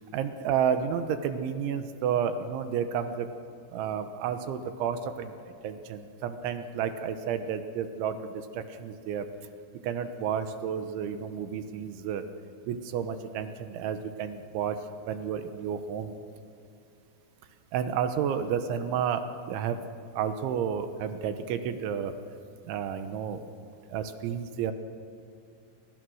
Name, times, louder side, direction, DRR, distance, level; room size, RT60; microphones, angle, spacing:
voice 1, 0.1-3.3 3.7-5.3 5.6-9.3 9.8-12.2 12.7-14.8 15.1-16.1 17.7-19.8 20.2-22.1 22.6-23.4 23.9-24.7, right 8 dB, 75° right, 8 dB, 3.3 m, -31 dB
29.5 x 26.5 x 6.4 m, 2.5 s
omnidirectional pair, 5.8 m